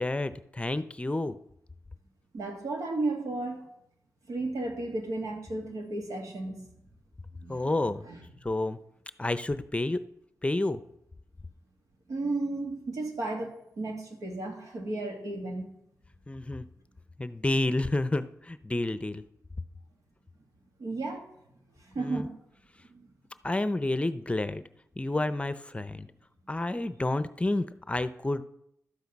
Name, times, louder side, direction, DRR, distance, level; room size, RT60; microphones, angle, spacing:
voice 1, 0.0-1.4 7.5-8.1 8.4-8.8 9.2-10.0 10.4-10.8 16.3-16.7 17.2-19.2 22.0-22.3 23.4-24.6 25.0-26.1 26.5-28.4, left 2 dB, 20° left, 13 dB, 0.7 m, -29 dB
voice 2, 2.3-3.7 4.3-6.6 7.3-8.2 12.1-15.7 18.9-19.0 20.8-21.3 21.8-22.4 22.9-23.1, right 2 dB, 85° right, 2 dB, 2.3 m, -34 dB
12.0 x 8.1 x 5.3 m, 0.76 s
cardioid pair, 60°, 6 cm